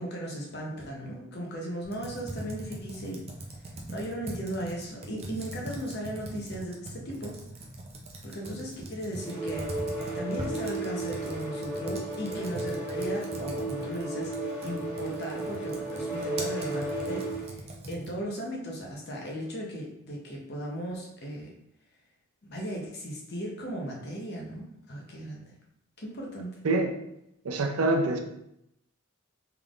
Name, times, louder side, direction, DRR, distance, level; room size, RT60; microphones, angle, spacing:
voice 1, 0.0-3.2 3.9-7.4 8.2-9.7 10.1-17.6 17.9-21.5 22.5-25.5 26.0-26.5, equal, 50° left, -1 dB, 0.8 m, -37 dB
Computer keyboard, 1.8-18.3, right 1 dB, 30° right, 0.5 m, -41 dB
sound 1, 9.2-17.6, right 2 dB, 10° left, 1.3 m, -34 dB
voice 2, 27.4-28.2, right 2 dB, 85° right, 5 dB, 0.5 m, -25 dB
3.7 x 3.3 x 2.4 m, 0.80 s
head